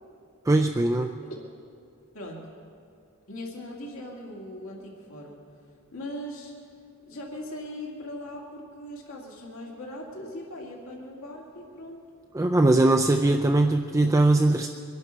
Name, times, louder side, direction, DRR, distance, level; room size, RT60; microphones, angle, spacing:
voice 1, 0.5-1.1 12.3-14.7, right 2 dB, 15° right, 4 dB, 0.3 m, -21 dB
voice 2, 2.1-2.5 3.3-5.4 5.9-6.5 7.1-12.0, left 1 dB, 80° left, -2 dB, 2.1 m, -39 dB
24.0 x 11.0 x 4.4 m, 2.4 s
head